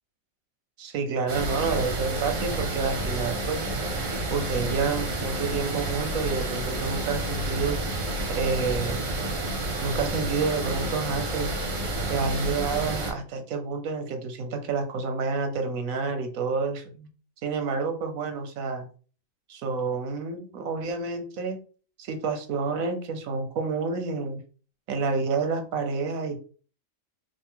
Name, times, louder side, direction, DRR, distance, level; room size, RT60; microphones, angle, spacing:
voice 1, 0.8-3.6 4.3-7.8 8.4-9.1 9.8-11.5 12.1-17.1 17.4-18.9 19.5-21.6 22.0-24.4 24.9-26.4, right 4 dB, 90° right, 7 dB, 1.2 m, -29 dB
sound 1, 1.3-13.1, right 2 dB, 70° right, 1.7 m, -30 dB
5.3 x 2.5 x 3.7 m, 0.40 s
omnidirectional pair, 1.4 m